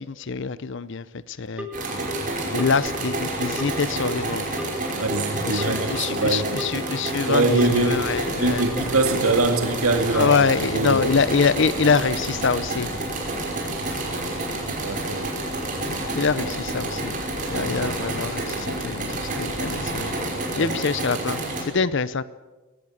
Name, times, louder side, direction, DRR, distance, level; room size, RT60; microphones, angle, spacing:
voice 1, 0.0-1.7 2.5-4.5 5.4-8.7 10.1-12.9 16.1-17.2 17.5-20.1 20.5-22.2, left 5 dB, 55° left, 17 dB, 0.6 m, -25 dB
Telephone, 1.6-2.1 2.6-3.1 3.6-4.1 4.6-5.1 5.6-6.1 6.6-7.1 7.6-8.1 8.6-9.1, left 1 dB, 5° right, 2.0 m, -37 dB
sound 1, 1.7-21.6, right 2 dB, 35° right, 5.7 m, -29 dB
voice 2, 4.9-6.6 7.3-10.3 10.7-11.0 14.8-15.3 17.5-17.9 20.5-20.7, right 2 dB, 85° right, 5 dB, 2.1 m, -23 dB
sound 2, 7.5-20.2, left 1 dB, 30° left, 2.8 m, -39 dB
20.5 x 17.0 x 8.7 m, 1.2 s
head